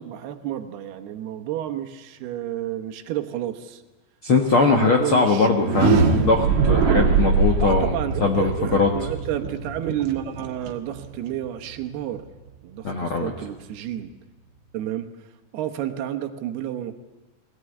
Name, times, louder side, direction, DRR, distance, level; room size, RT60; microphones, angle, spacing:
voice 1, 0.0-3.8 4.7-6.6 7.6-12.2 12.6-14.1 14.7-15.1 15.5-17.0, right 12 dB, 75° right, 6 dB, 3.0 m, -30 dB
voice 2, 4.2-8.9 12.8-13.3, left 4 dB, 60° left, 3 dB, 1.4 m, -21 dB
sound 1, 5.5-11.4, right 4 dB, 55° right, 2.4 m, -22 dB
21.0 x 18.0 x 9.8 m, 1.1 s
omnidirectional pair, 4.9 m